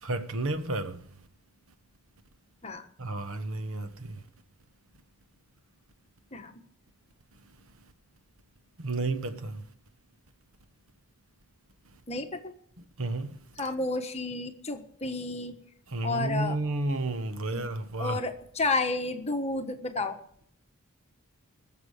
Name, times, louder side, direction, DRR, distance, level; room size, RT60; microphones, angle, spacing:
voice 1, 0.0-1.0 3.0-4.2 8.8-9.6 13.0-13.4 15.9-18.2, right 2 dB, 65° right, 1.3 m, -31 dB
voice 2, 12.1-12.5 13.6-15.5 16.0-16.6 17.5-17.6 18.0-20.2, left 3 dB, 30° left, 1.3 m, -31 dB
20.5 x 7.3 x 6.6 m
head